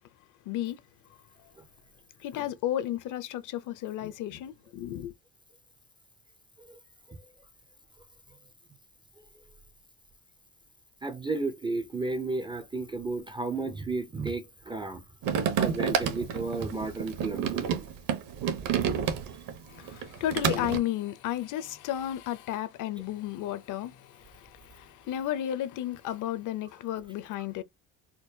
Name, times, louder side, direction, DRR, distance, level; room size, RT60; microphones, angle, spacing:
voice 1, 0.5-0.8 2.2-5.1 19.7-27.6, left 12 dB, 55° left, 0.6 m, -33 dB
voice 2, 11.0-15.0 15.6-17.9, right 3 dB, 15° right, 0.3 m, -33 dB
sound 1, 15.2-19.5 19.9-20.8, right 8 dB, 60° right, 0.9 m, -29 dB
4.4 x 2.2 x 2.6 m
cardioid pair, 145°, 36 cm